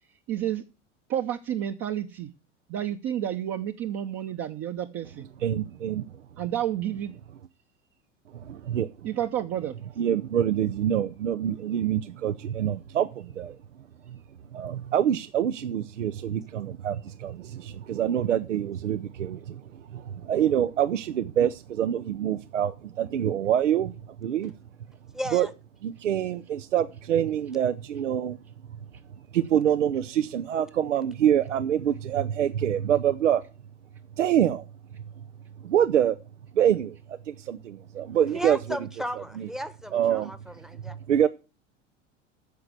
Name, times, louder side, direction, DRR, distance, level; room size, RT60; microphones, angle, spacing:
voice 1, 0.3-0.6 1.1-2.3 2.7-5.2 6.4-7.1 9.0-9.7, right 11 dB, 40° right, 4 dB, 0.9 m, -30 dB
voice 2, 5.4-6.1 8.3-8.9 10.0-13.6 14.1-14.2 14.5-19.6 19.9-24.5 25.3-25.5 25.8-28.4 29.3-33.4 34.2-34.6 35.6-36.2 36.6-38.8 39.2-39.5 39.9-40.3 41.1-41.3, right 10 dB, 80° right, 13 dB, 0.7 m, -26 dB
voice 3, 25.1-25.5 38.3-40.4 40.6-40.9, equal, ahead, 14 dB, 1.0 m, -35 dB
9.6 x 6.9 x 7.8 m, 0.31 s
figure-of-eight pair, 80°, 36 cm